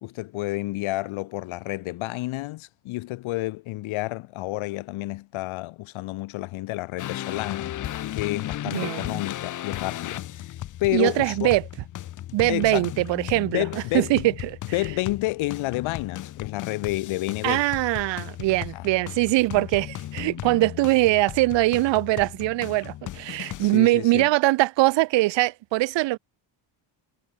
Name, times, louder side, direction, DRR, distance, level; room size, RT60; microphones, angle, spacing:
voice 1, 0.0-10.5 10.8-11.5 12.5-12.9 13.5-14.3 14.7-17.6 18.7-18.9 23.6-24.3, left 19 dB, 80° left, 1.1 m, -30 dB
sound 1, 7.0-23.8, left 13 dB, 40° left, 0.6 m, -36 dB
voice 2, 8.7-9.2 10.9-11.6 12.3-13.6 13.9-14.3 17.4-26.2, right 19 dB, 65° right, 0.6 m, -22 dB
cardioid pair, 130°, 47 cm